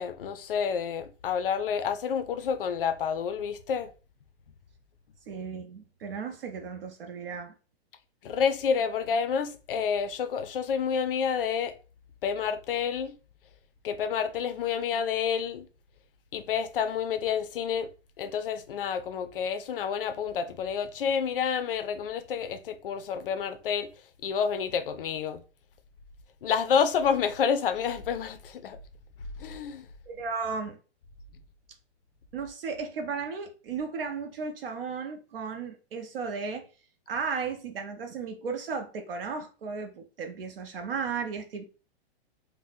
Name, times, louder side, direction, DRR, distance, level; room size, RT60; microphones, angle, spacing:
voice 1, 0.0-3.9 8.2-11.7 12.2-13.2 13.8-15.7 16.3-17.9 18.2-23.9 24.2-25.4 26.4-28.8 29.4-29.9, left 7 dB, 55° left, 0.4 m, -29 dB
voice 2, 5.3-7.5 30.1-30.8 32.3-36.7 37.1-41.6, right 5 dB, 60° right, 0.6 m, -35 dB
2.6 x 2.1 x 4.0 m
hypercardioid pair, 180°, 33 cm